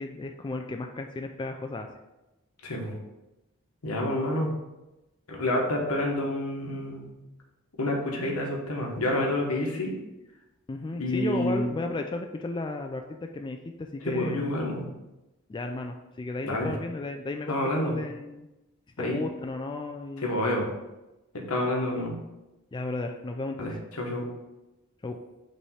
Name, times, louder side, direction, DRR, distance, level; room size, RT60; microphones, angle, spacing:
voice 1, 0.0-1.9 10.7-14.5 15.5-18.5 19.0-20.3 22.7-23.8 25.0-25.2, left 2 dB, 20° left, 4 dB, 0.3 m, -34 dB
voice 2, 2.6-2.9 3.8-4.5 5.3-7.1 7.8-10.0 11.0-11.7 14.0-14.9 16.4-16.7 17.5-18.0 19.0-19.2 20.2-20.7 21.5-22.1 23.6-24.2, left 1 dB, 85° left, 0 dB, 1.3 m, -28 dB
5.2 x 3.3 x 5.5 m, 1.0 s
head